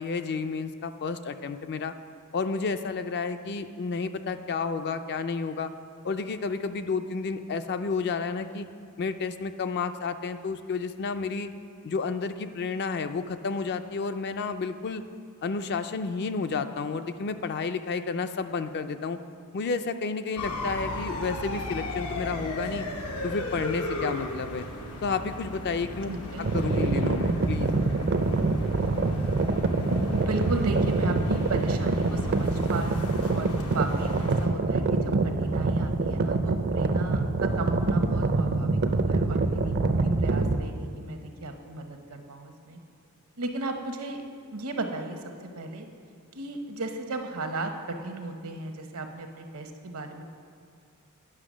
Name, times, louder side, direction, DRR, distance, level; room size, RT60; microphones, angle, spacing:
voice 1, 0.0-1.9 2.3-5.7 6.0-8.7 9.0-11.5 11.8-15.0 15.4-19.2 19.5-22.9 23.2-24.7 25.0-26.1 26.5-27.7, left 4 dB, 50° left, 9 dB, 0.4 m, -31 dB
sound 1, 20.4-34.5, left 1 dB, 90° left, 1.0 m, -36 dB
voice 2, 26.1-26.6 30.1-42.8 43.4-44.2 44.5-45.9 46.3-50.2, right 2 dB, 75° right, 5 dB, 0.9 m, -35 dB
sound 2, 26.4-40.6, right 3 dB, 50° right, 0.5 m, -25 dB
9.7 x 5.8 x 6.2 m, 2.2 s
head